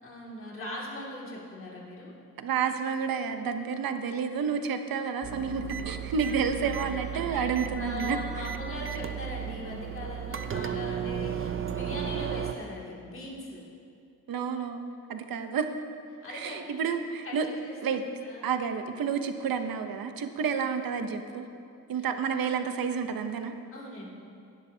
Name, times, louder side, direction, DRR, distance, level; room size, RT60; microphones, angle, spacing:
voice 1, 0.0-2.1 6.2-7.4 7.8-13.7 16.2-16.7 17.2-18.5 22.0-22.1 23.7-24.1, left 2 dB, 40° left, -4 dB, 2.4 m, -40 dB
voice 2, 2.4-8.5 14.3-15.7 16.3-17.5 17.8-18.1 18.4-21.5 21.9-23.5, right 6 dB, 85° right, 7 dB, 0.8 m, -30 dB
sound 1, 5.2-12.5, right 9 dB, 40° right, 0.5 m, -35 dB
17.5 x 11.0 x 2.8 m, 2.5 s
wide cardioid pair, 165°, 34 cm